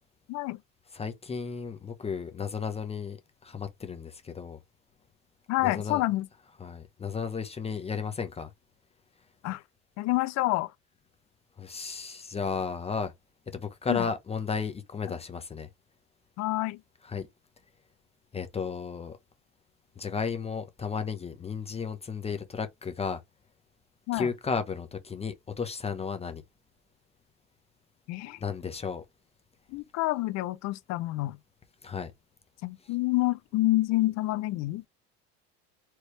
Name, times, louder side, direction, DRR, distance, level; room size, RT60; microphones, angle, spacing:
voice 1, 0.9-3.2 3.4-4.6 5.6-6.0 6.6-8.5 11.6-13.1 13.5-15.7 17.0-17.3 18.3-19.2 20.0-23.2 24.1-26.4 28.4-29.0 31.8-32.1, left 5 dB, 20° left, 0.8 m, -33 dB
voice 2, 5.5-6.3 9.4-9.6 10.0-10.7 13.9-14.1 16.4-16.8 24.1-24.3 28.1-28.4 29.7-31.4 32.6-34.8, left 18 dB, 55° left, 0.6 m, -28 dB
4.5 x 3.1 x 3.2 m
supercardioid pair, 120°, 33 cm